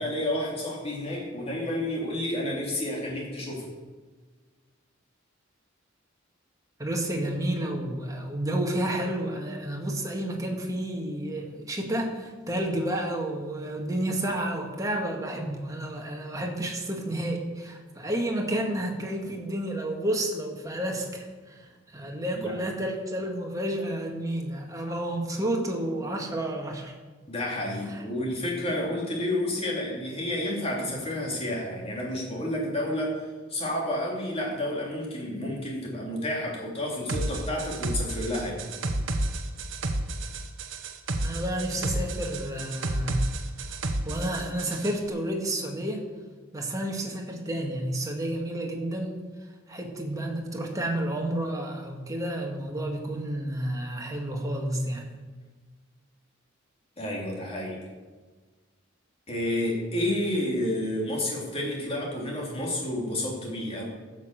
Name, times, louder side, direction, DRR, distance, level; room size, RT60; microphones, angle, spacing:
voice 1, 0.0-3.6 22.0-22.1 22.3-22.5 27.3-33.2 33.5-38.6 57.0-57.8 59.3-63.8, left 1 dB, 30° left, -2 dB, 3.1 m, -30 dB
voice 2, 6.8-26.9 27.9-28.0 41.2-43.8 44.0-46.0 46.5-49.2 49.7-55.1, right 1 dB, 20° right, 1 dB, 1.8 m, -31 dB
sound 1, 37.1-45.0, right 1 dB, 70° right, 1.0 m, -31 dB
12.0 x 6.3 x 7.8 m, 1.4 s
head